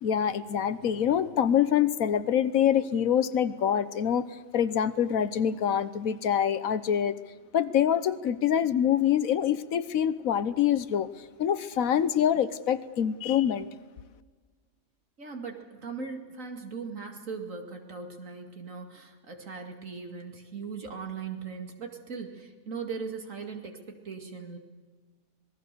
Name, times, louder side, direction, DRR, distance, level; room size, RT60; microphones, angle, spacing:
voice 1, 0.0-4.3 4.5-7.2 7.5-11.1 11.4-13.7, left 9 dB, 80° left, 14 dB, 1.3 m, -25 dB
voice 2, 15.2-23.8 24.0-24.6, right 5 dB, 70° right, 4 dB, 2.7 m, -39 dB
26.5 x 19.5 x 6.8 m, 1.4 s
omnidirectional pair, 1.4 m